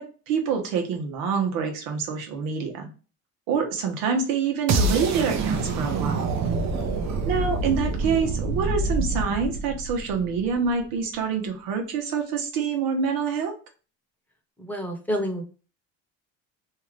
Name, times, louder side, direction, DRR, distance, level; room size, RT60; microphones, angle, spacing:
voice 1, 0.0-2.9 3.5-6.4 7.2-13.5, right 6 dB, 85° right, 3 dB, 1.0 m, -26 dB
sound 1, 4.7-10.7, right 3 dB, 50° right, 0.7 m, -26 dB
voice 2, 6.7-7.2 14.6-15.4, equal, 5° left, 2 dB, 0.9 m, -30 dB
2.8 x 2.4 x 3.2 m, 0.37 s
supercardioid pair, 100°, 35 cm